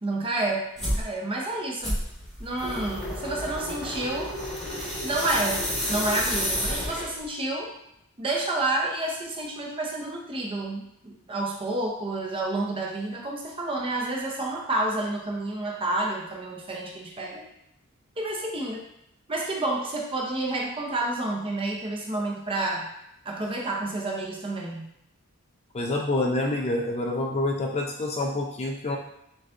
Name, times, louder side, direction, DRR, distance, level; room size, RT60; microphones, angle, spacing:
voice 1, 0.0-2.0 2.4-4.3 5.0-5.6 5.9-7.7 8.2-17.4 18.2-18.8 19.3-22.8 23.2-24.9, right 2 dB, 25° right, -1 dB, 0.6 m, -29 dB
sound 1, 0.8-1.1 1.8-7.2, equal, ahead, 1.3 m, -30 dB
voice 2, 25.7-29.0, left 2 dB, 30° left, 0 dB, 0.4 m, -27 dB
6.1 x 2.3 x 2.5 m, 0.79 s
head